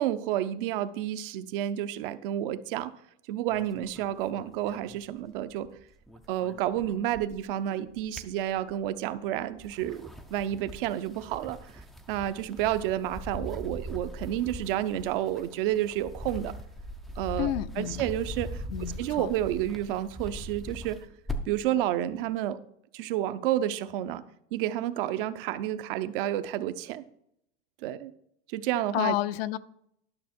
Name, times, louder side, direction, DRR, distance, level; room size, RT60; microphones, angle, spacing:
voice 1, 0.0-2.9 3.3-5.7 6.3-11.6 12.1-16.6 17.2-18.6 19.0-21.1 21.5-22.6 22.9-24.2 24.5-27.0 27.8-28.1 28.5-29.2, right 12 dB, 60° right, 0.7 m, -30 dB
sound 1, 3.5-5.7 5.9-7.5 7.9-9.0 9.5-21.7, equal, ahead, 0.4 m, -41 dB
voice 2, 17.4-18.0 18.7-19.3 28.9-29.6, left 14 dB, 70° left, 0.6 m, -30 dB
12.0 x 6.4 x 4.4 m
supercardioid pair, 155°, 31 cm